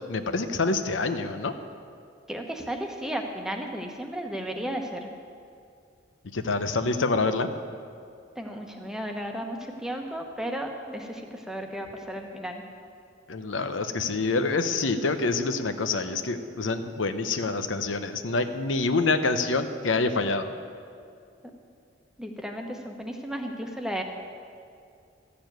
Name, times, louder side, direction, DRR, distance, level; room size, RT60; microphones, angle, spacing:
voice 1, 0.1-1.5 6.3-7.5 13.3-20.5, left 3 dB, 85° left, 9 dB, 0.8 m, -26 dB
voice 2, 2.3-5.1 8.4-12.6 22.2-24.0, right 1 dB, 5° right, 2 dB, 1.0 m, -34 dB
13.5 x 6.9 x 9.2 m, 2.4 s
head